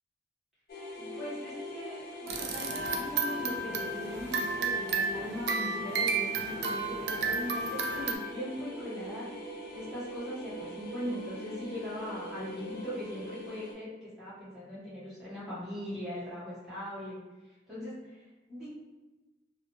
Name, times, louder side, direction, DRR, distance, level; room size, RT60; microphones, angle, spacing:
sound 1, 0.7-13.7, left 1 dB, 60° left, 0.5 m, -42 dB
voice 1, 1.0-17.2 17.7-18.7, left 1 dB, ahead, -12 dB, 1.1 m, -40 dB
sound 2, 2.3-8.2, right 4 dB, 70° right, 0.3 m, -32 dB
2.5 x 2.1 x 2.9 m, 1.2 s
head